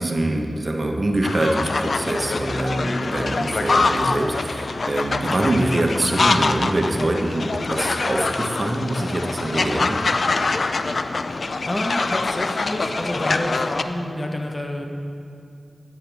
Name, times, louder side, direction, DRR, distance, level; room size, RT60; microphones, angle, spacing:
voice 1, 0.0-10.0, right 1 dB, 45° right, 2 dB, 1.1 m, -24 dB
sound 1, 1.2-13.8, left 3 dB, 65° left, 0.4 m, -24 dB
voice 2, 11.4-14.8, left 1 dB, 30° left, 3 dB, 1.0 m, -28 dB
10.0 x 9.3 x 3.5 m, 2.5 s
cardioid pair, 40°, 0 cm